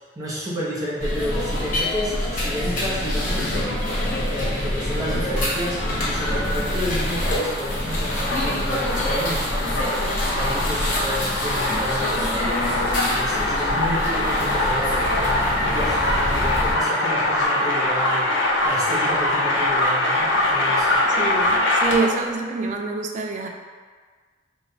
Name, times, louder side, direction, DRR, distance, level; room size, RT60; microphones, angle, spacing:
voice 1, 0.2-3.8 4.3-12.6 13.1-18.3 18.6-21.0, equal, 20° right, -7 dB, 0.8 m, -31 dB
sound 1, 1.0-16.7, left 1 dB, 45° left, 0.7 m, -26 dB
sound 2, 5.6-22.2, left 1 dB, 80° left, 0.6 m, -23 dB
voice 2, 21.1-23.5, right 3 dB, 40° right, 2 dB, 0.3 m, -26 dB
3.1 x 2.2 x 3.8 m, 1.5 s
head